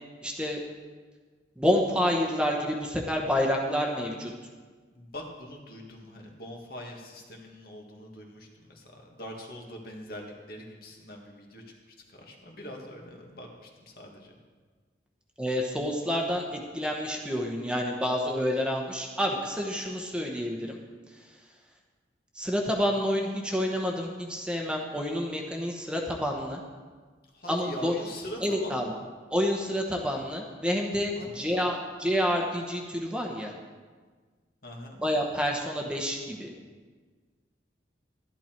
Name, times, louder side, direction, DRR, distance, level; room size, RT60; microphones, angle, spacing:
voice 1, 0.2-0.6 1.6-4.3 15.4-20.8 21.1-21.3 22.3-26.6 27.5-27.9 28.4-28.9 29.3-33.5 35.0-36.5, equal, 5° right, 0 dB, 1.1 m, -28 dB
voice 2, 4.9-14.4 27.3-29.0 31.1-31.6 34.6-35.0, left 1 dB, 55° left, 0 dB, 1.9 m, -43 dB
12.0 x 11.5 x 4.5 m, 1.5 s
head